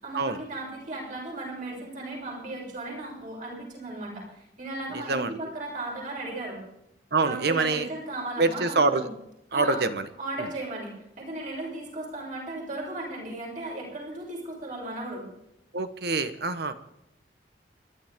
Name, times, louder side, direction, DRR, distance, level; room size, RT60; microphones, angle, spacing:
voice 1, 0.0-6.6 7.2-9.1 9.5-9.9 10.2-15.3, right 2 dB, 50° right, -2 dB, 6.8 m, -36 dB
voice 2, 7.1-7.8 8.4-9.0 9.5-10.0 15.7-16.7, right 3 dB, 65° right, 10 dB, 1.1 m, -25 dB
28.5 x 12.0 x 3.6 m, 0.81 s
head